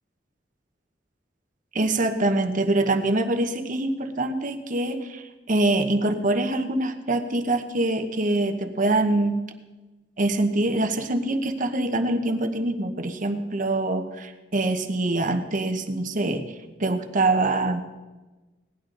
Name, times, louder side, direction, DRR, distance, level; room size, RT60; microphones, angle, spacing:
voice 1, 1.7-9.4 10.2-16.5 16.8-17.8, right 2 dB, 45° right, 6 dB, 1.0 m, -24 dB
18.0 x 11.0 x 3.9 m, 1.2 s
head